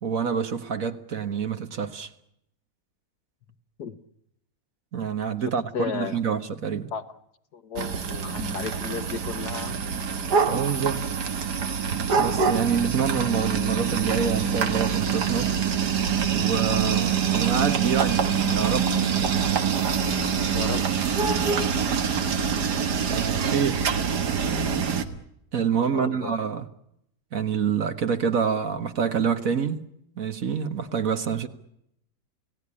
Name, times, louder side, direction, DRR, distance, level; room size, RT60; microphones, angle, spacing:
voice 1, 0.0-2.1 4.9-6.9 10.5-11.0 12.2-15.5 16.3-18.9 23.1-23.9 25.5-26.7 27.3-29.9 30.2-31.5, right 7 dB, 55° right, 1.7 m, -27 dB
voice 2, 5.7-6.2 6.9-7.0 7.5-9.8 20.5-20.9 25.9-26.3, left 7 dB, 70° left, 1.9 m, -33 dB
sound 1, 7.8-25.0, right 7 dB, 80° right, 2.1 m, -25 dB
sound 2, 12.2-25.2, left 1 dB, 90° left, 2.9 m, -42 dB
30.0 x 17.5 x 10.0 m
omnidirectional pair, 1.7 m